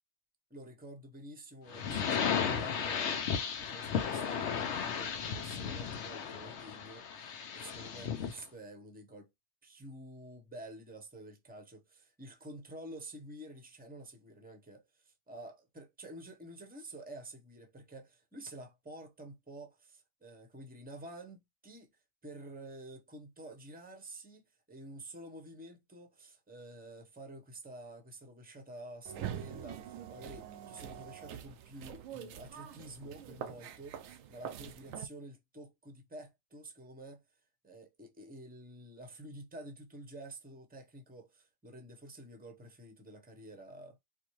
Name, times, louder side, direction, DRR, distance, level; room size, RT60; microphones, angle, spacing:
voice 1, 0.5-3.2 3.6-7.1 7.5-9.3 9.6-21.9 22.2-24.4 24.7-37.2 37.6-44.0, right 1 dB, 10° right, 0.8 m, -49 dB
sound 1, 1.7-8.4, left 7 dB, 65° left, 0.9 m, -35 dB
sound 2, 29.1-35.1, right 9 dB, 85° right, 1.0 m, -44 dB
4.5 x 2.2 x 3.0 m
omnidirectional pair, 1.3 m